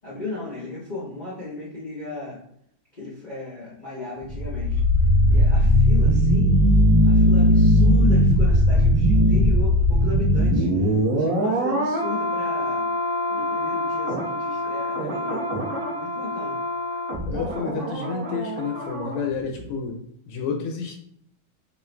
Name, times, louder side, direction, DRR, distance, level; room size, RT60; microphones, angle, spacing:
voice 1, 0.0-2.4 2.9-4.8 5.3-6.5 7.0-12.9 13.3-15.5 15.9-16.6, left 3 dB, 60° left, -7 dB, 0.4 m, -35 dB
sound 1, 4.2-19.2 19.5-19.6, equal, 70° right, 0.5 m, -20 dB
voice 2, 17.2-20.0 20.3-21.0, left 5 dB, 75° left, 3 dB, 1.3 m, -30 dB
3.6 x 2.5 x 4.3 m, 0.69 s
omnidirectional pair, 2.4 m